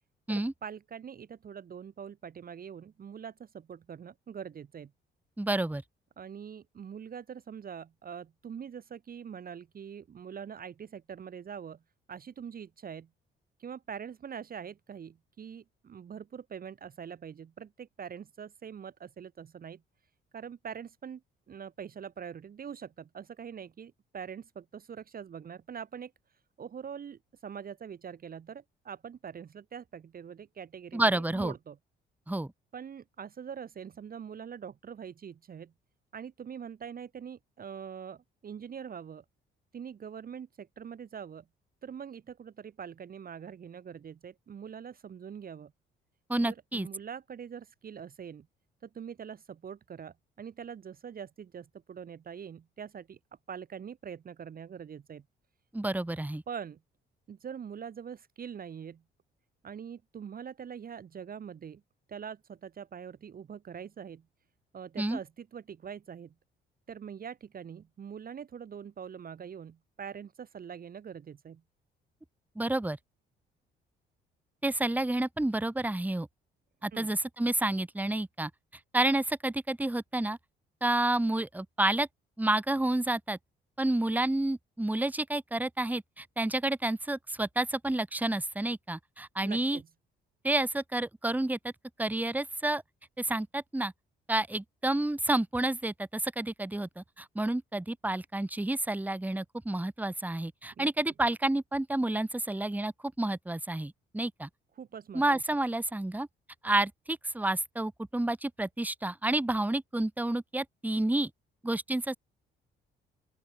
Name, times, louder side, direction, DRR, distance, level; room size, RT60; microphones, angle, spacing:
voice 1, 0.3-4.9 6.2-11.8 12.1-13.1 13.6-19.8 20.3-21.2 21.5-26.1 26.6-31.8 32.7-35.7 36.1-39.2 39.7-41.5 41.8-45.7 46.4-48.5 48.8-53.2 53.5-55.2 56.5-56.8 57.3-59.0 59.6-61.8 62.1-64.2 64.7-66.3 66.9-71.6 76.9-77.1 89.4-89.9 100.8-100.9 104.8-105.4, right 7 dB, 45° right, 1.0 m, -43 dB
voice 2, 5.4-5.8 30.9-31.5 32.3-32.5 46.3-46.9 55.7-56.4 65.0-65.2 72.6-73.0 74.6-76.3 76.8-78.5 78.9-80.4 80.8-82.1 82.4-83.4 83.8-89.8 90.4-91.7 92.0-92.8 93.2-93.9 94.3-102.9 103.2-104.5 105.1-106.3 106.6-111.3 111.6-112.2, right 1 dB, 10° right, 1.2 m, -30 dB
open air
supercardioid pair, 65°, 21 cm